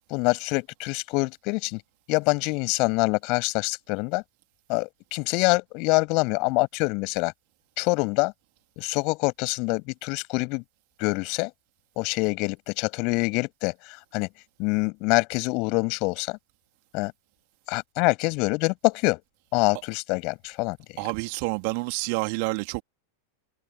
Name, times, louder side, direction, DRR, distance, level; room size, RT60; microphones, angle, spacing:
voice 1, 0.1-1.8 2.1-4.2 4.7-7.3 7.8-8.3 8.8-10.6 11.0-11.5 12.0-14.3 14.6-16.4 16.9-17.1 17.7-19.2 19.5-20.8, left 29 dB, 45° left, 7.4 m, -25 dB
voice 2, 21.0-22.8, right 34 dB, 45° right, 3.3 m, -28 dB
figure-of-eight pair, 90°, 0 cm